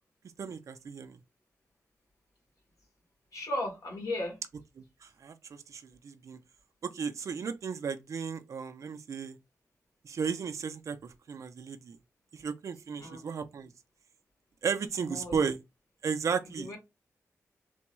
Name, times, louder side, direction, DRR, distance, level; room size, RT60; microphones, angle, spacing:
voice 1, 0.4-1.2 4.8-4.9 5.2-6.4 6.8-9.4 10.0-12.0 12.3-13.7 14.6-15.6 16.0-16.8, right 6 dB, 65° right, 0.5 m, -34 dB
voice 2, 3.3-4.4 13.0-13.2 15.0-15.4 16.5-16.8, left 1 dB, 80° left, 1.6 m, -35 dB
3.4 x 2.2 x 3.0 m
wide cardioid pair, 95°, 6 cm